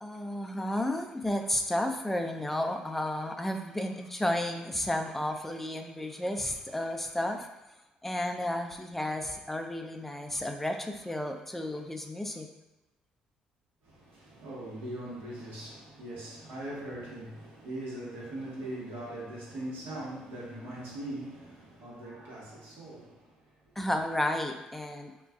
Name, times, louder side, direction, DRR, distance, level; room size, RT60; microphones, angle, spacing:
voice 1, 0.0-7.5 8.0-12.5 23.8-25.1, left 1 dB, 5° left, 4 dB, 0.4 m, -32 dB
voice 2, 13.8-23.6, right 1 dB, 70° right, -5 dB, 1.0 m, -41 dB
2.4 x 2.2 x 3.5 m, 1.0 s
supercardioid pair, 65°, 3 cm